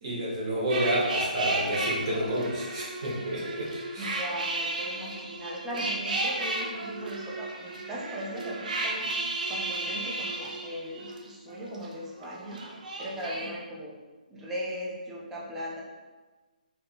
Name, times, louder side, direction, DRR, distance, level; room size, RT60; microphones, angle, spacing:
voice 1, 0.0-4.2, right 1 dB, 40° right, -6 dB, 1.1 m, -30 dB
sound 1, 0.7-11.8 12.2-13.5, right 2 dB, 60° right, 0.5 m, -34 dB
voice 2, 4.0-12.6 13.0-13.9 14.3-15.8, equal, 5° right, -5 dB, 0.4 m, -38 dB
3.5 x 2.9 x 2.2 m, 1.2 s
hypercardioid pair, 160°, 5 cm